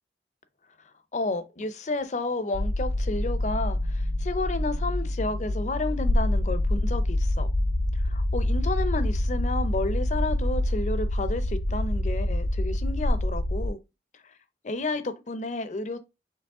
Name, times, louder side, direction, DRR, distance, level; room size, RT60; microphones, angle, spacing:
voice 1, 1.1-7.5 8.0-13.8 14.6-16.0, left 2 dB, 40° left, 0.5 m, -31 dB
sound 1, 2.5-13.7, left 1 dB, 80° left, 0.7 m, -26 dB
4.6 x 3.1 x 3.6 m
head